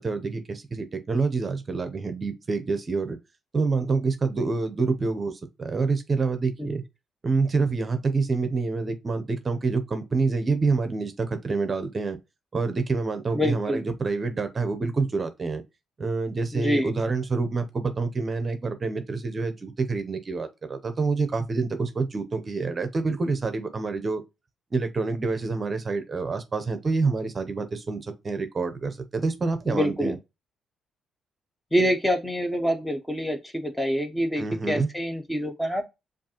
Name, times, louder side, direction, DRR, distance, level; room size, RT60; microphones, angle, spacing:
voice 1, 0.0-3.2 3.5-6.8 7.2-12.2 12.5-15.6 16.0-24.2 24.7-30.2 34.4-34.9, right 4 dB, 30° right, 0.6 m, -27 dB
voice 2, 13.3-13.8 16.5-16.9 29.7-30.2 31.7-35.8, equal, 10° left, 0.7 m, -26 dB
7.1 x 2.4 x 2.9 m
cardioid pair, 105°, 0 cm